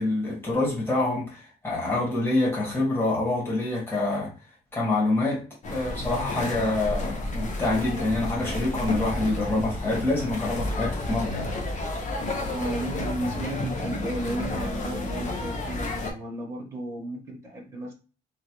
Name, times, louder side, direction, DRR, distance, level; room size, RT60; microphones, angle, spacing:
voice 1, 0.0-4.3 4.7-5.4 5.7-11.5, left 2 dB, 15° left, 1.5 m, -26 dB
sound 1, 5.6-16.1, left 2 dB, 50° left, 0.7 m, -31 dB
voice 2, 12.5-17.9, right 1 dB, 15° right, 1.0 m, -33 dB
3.1 x 2.2 x 2.9 m
cardioid pair, 130°, 16 cm